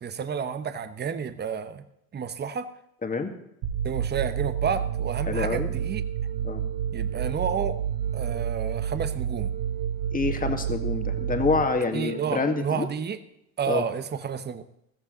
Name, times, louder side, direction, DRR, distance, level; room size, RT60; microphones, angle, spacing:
voice 1, 0.0-1.8 2.1-2.7 3.8-6.0 6.9-7.8 8.1-9.5 11.9-13.2 13.6-14.6, right 7 dB, 20° right, 12 dB, 1.0 m, -30 dB
voice 2, 3.0-3.3 5.3-5.7 6.4-6.6 10.1-12.9 13.7-13.8, left 4 dB, 15° left, 6 dB, 2.0 m, -27 dB
sound 1, 3.6-12.6, right 9 dB, 60° right, 3.3 m, -30 dB
14.5 x 14.0 x 4.0 m, 0.82 s
hypercardioid pair, 95°, 48 cm